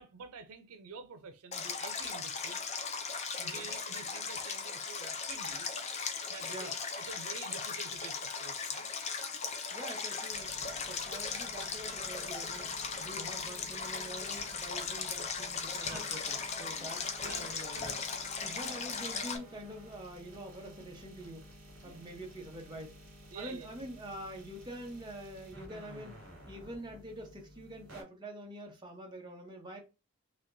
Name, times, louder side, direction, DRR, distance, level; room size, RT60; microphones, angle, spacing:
voice 1, 0.0-2.6 3.4-5.7 6.3-6.7 7.1-8.9 15.9-16.2 16.7-17.6 18.5-18.6 21.8-22.0 23.3-23.7, right 5 dB, 90° right, 0.6 m, -49 dB
Stream, 1.5-19.4, left 5 dB, 30° left, 0.4 m, -38 dB
voice 2, 6.4-6.7 9.7-10.5 10.9-21.4 21.8-22.9 23.3-26.2 26.5-29.8, right 1 dB, 20° right, 0.9 m, -46 dB
sound 1, 10.3-28.0, equal, 70° right, 2.4 m, -52 dB
4.1 x 2.9 x 2.6 m
head